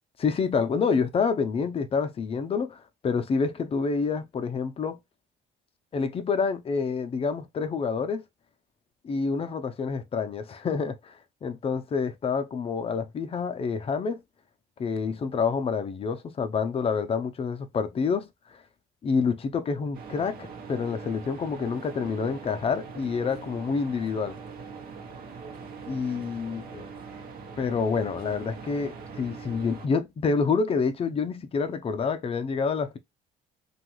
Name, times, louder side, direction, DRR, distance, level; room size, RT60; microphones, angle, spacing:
voice 1, 0.2-5.0 5.9-8.2 9.0-14.2 14.8-18.3 19.0-24.4 25.9-26.9 27.6-33.0, left 5 dB, 35° left, 0.5 m, -28 dB
sound 1, 19.9-29.9, right 5 dB, 60° right, 0.8 m, -42 dB
3.0 x 2.4 x 3.0 m
cardioid pair, 110°, 17 cm